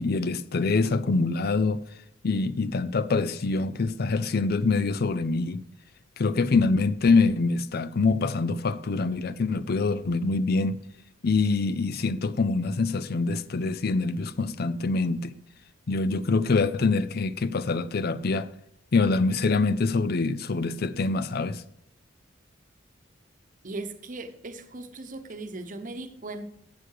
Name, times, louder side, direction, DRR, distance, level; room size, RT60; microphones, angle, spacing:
voice 1, 0.0-1.8 2.2-5.6 6.2-10.8 11.2-15.3 15.9-18.5 18.9-21.6, left 3 dB, 55° left, 0.5 m, -25 dB
voice 2, 23.6-26.4, right 2 dB, 45° right, 1.0 m, -38 dB
11.5 x 7.6 x 4.8 m
head